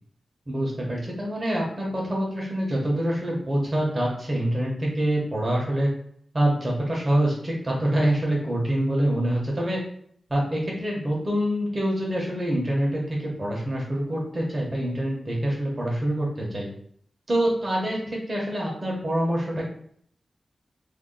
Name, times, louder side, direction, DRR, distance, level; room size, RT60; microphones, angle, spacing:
voice 1, 0.5-5.9 6.3-9.8 10.3-16.7 17.3-19.6, right 1 dB, 35° right, -3 dB, 1.0 m, -25 dB
2.7 x 2.2 x 3.8 m, 0.63 s
wide cardioid pair, 85°, 0 cm